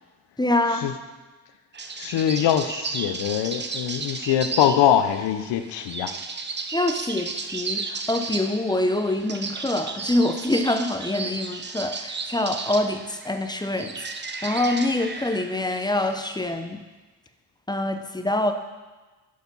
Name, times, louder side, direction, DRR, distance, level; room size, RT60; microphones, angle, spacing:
voice 1, 0.4-0.9 6.7-14.1 14.4-16.8 17.7-18.5, left 1 dB, 10° left, 7 dB, 0.6 m, -25 dB
sound 1, 1.7-16.4, right 4 dB, 25° right, 0.6 m, -34 dB
voice 2, 2.0-6.1, left 10 dB, 85° left, 9 dB, 0.7 m, -23 dB
6.6 x 5.8 x 5.3 m, 1.3 s
cardioid pair, 65°, 41 cm